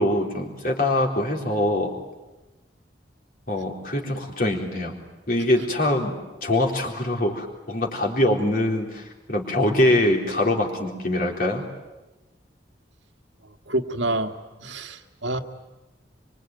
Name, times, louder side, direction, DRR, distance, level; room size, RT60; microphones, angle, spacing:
voice 1, 0.0-2.0 3.5-5.0 5.3-11.6, left 1 dB, 50° left, 1 dB, 4.0 m, -23 dB
voice 2, 13.7-14.3 14.6-15.4, right 2 dB, 85° right, 6 dB, 1.7 m, -27 dB
24.5 x 24.5 x 9.3 m, 1.1 s
head